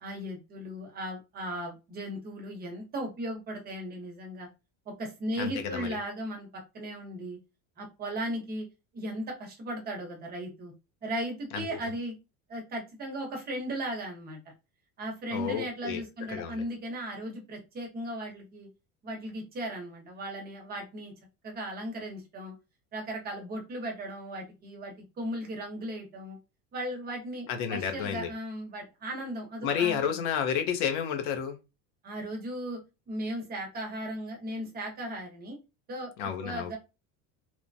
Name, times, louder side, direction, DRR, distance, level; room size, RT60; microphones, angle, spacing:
voice 1, 0.0-4.5 4.9-7.4 7.8-8.7 8.9-10.7 11.0-12.2 12.5-14.4 15.0-18.7 19.0-21.1 21.4-22.5 22.9-26.4 26.7-30.2 32.0-32.8 33.1-35.6 35.9-36.1 36.4-36.8, right 1 dB, 25° right, 1 dB, 0.8 m, -36 dB
voice 2, 5.4-5.9 11.5-11.6 15.3-16.0 16.3-16.6 27.5-28.3 29.6-31.6 36.2-36.8, left 8 dB, 80° left, 5 dB, 0.8 m, -31 dB
3.0 x 2.1 x 2.6 m, 0.27 s
cardioid pair, 165°, 36 cm